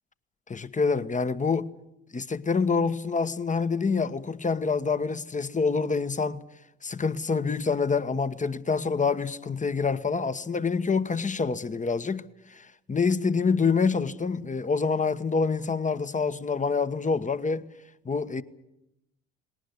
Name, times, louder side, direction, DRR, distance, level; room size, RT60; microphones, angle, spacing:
voice 1, 0.5-1.7 2.1-6.4 6.8-12.2 12.5-17.6 18.0-18.4, left 5 dB, 25° left, 1.3 m, -26 dB
20.0 x 18.5 x 9.7 m
hypercardioid pair, 60°, 31 cm